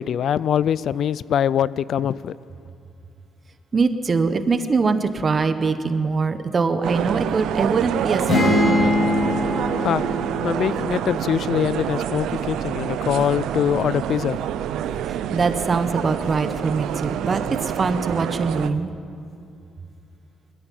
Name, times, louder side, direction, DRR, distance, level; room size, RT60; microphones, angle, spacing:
voice 1, 0.0-2.4 9.8-10.0 10.4-14.4, left 9 dB, 65° left, 19 dB, 0.5 m, -23 dB
voice 2, 3.7-8.6 15.1-18.9, right 4 dB, 35° right, 9 dB, 1.3 m, -23 dB
sound 1, 6.8-18.7, right 10 dB, 85° right, 0.7 m, -27 dB
sound 2, 8.3-12.0, left 1 dB, 40° left, 7.3 m, -23 dB
20.5 x 14.0 x 9.4 m, 2.5 s
cardioid pair, 90°, 0 cm